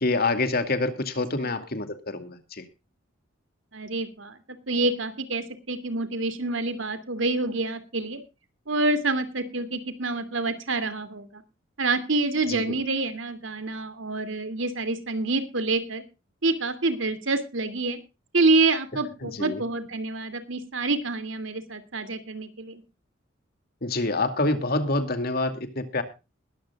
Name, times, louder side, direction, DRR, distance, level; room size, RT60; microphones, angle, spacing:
voice 1, 0.0-2.7 12.5-12.8 19.2-19.6 23.8-26.0, left 2 dB, 50° left, 9 dB, 2.4 m, -27 dB
voice 2, 3.7-4.4 4.7-8.2 8.7-11.4 11.8-16.0 16.4-18.0 18.3-22.8, right 3 dB, 70° right, 11 dB, 2.6 m, -27 dB
21.0 x 13.5 x 2.4 m, 0.29 s
head